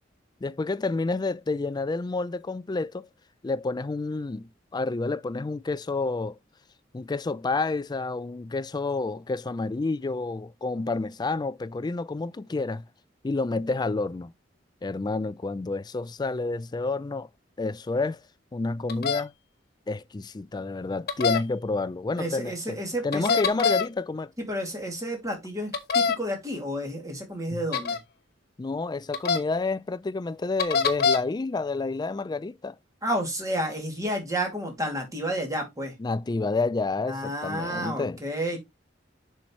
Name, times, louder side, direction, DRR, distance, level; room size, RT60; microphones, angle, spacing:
voice 1, 0.4-3.1 3.4-6.4 6.9-12.8 13.2-14.3 14.8-17.3 17.6-18.2 18.5-19.3 19.9-24.3 27.5-27.6 28.6-32.8 36.0-38.2, left 3 dB, 20° left, 0.4 m, -29 dB
sound 1, 18.9-19.2 21.1-21.4 23.1-23.9 25.7-26.2 27.7-28.0 29.1-29.4 30.6-31.2, left 5 dB, 55° left, 1.1 m, -23 dB
voice 2, 22.2-23.4 24.5-28.0 33.0-35.9 37.1-38.6, equal, 20° right, 2.5 m, -31 dB
7.3 x 5.7 x 3.1 m
head